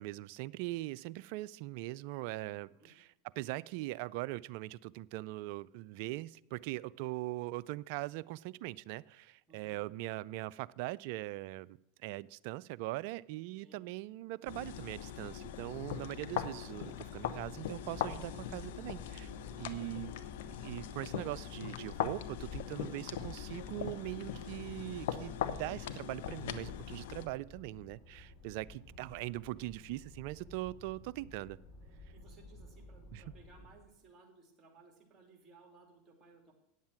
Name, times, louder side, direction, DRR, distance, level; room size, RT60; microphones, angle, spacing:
voice 1, 0.0-3.1 3.4-19.3 19.6-20.1 20.6-31.6 33.1-33.2, right 18 dB, 60° right, 18 dB, 0.3 m, -41 dB
voice 2, 9.5-9.8 13.6-13.8 19.5-20.1 28.6-28.9 32.1-36.5, right 4 dB, 25° right, 3 dB, 3.0 m, -61 dB
sound 1, 14.5-27.3, left 10 dB, 70° left, 0.7 m, -41 dB
sound 2, 17.0-34.0, left 2 dB, 40° left, 2.5 m, -55 dB
9.5 x 7.4 x 5.9 m, 0.84 s
hypercardioid pair, 100°, 0 cm